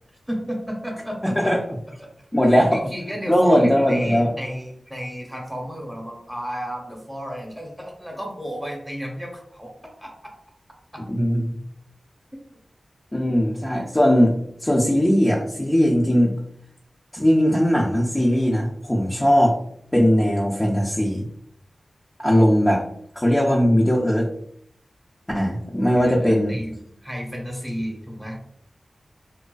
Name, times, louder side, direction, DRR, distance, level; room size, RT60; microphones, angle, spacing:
voice 1, 0.3-1.5 2.0-2.4 2.7-9.7 10.0-10.1 25.9-28.4, equal, 5° right, 0 dB, 0.8 m, -33 dB
voice 2, 1.2-1.6 2.3-2.9 3.3-4.3 11.1-11.5 13.1-16.3 17.1-19.6 19.9-21.2 22.2-22.8 23.2-24.3 25.3-26.6, equal, 15° left, -4 dB, 0.4 m, -19 dB
2.4 x 2.2 x 2.3 m, 0.69 s
cardioid pair, 50°, 0 cm